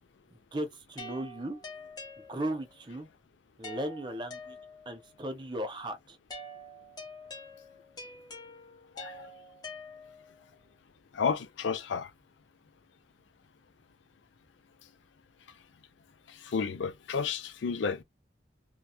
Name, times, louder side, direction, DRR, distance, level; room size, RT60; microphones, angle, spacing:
voice 1, 0.3-1.6 2.2-3.1 3.6-4.6 4.9-6.2, right 1 dB, 25° right, 0.6 m, -36 dB
sound 1, 1.0-2.8 3.6-5.1 6.3-10.4, left 1 dB, 20° left, 0.8 m, -46 dB
voice 2, 9.0-9.3 11.1-12.1 16.4-18.0, left 5 dB, 85° left, 0.4 m, -31 dB
2.8 x 2.2 x 2.2 m
head